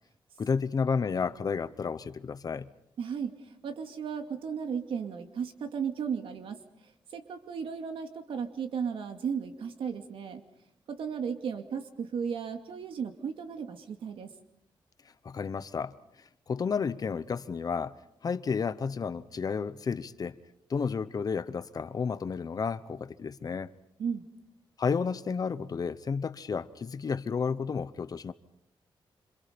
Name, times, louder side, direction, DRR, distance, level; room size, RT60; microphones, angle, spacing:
voice 1, 0.4-2.7 15.2-17.9 18.2-20.4 20.7-23.7 24.8-28.3, left 5 dB, 45° left, 0.9 m, -32 dB
voice 2, 3.0-6.6 7.1-10.4 10.9-14.3 24.0-24.3, right 6 dB, 80° right, 2.4 m, -35 dB
27.0 x 27.0 x 5.2 m
wide cardioid pair, 130°, 9 cm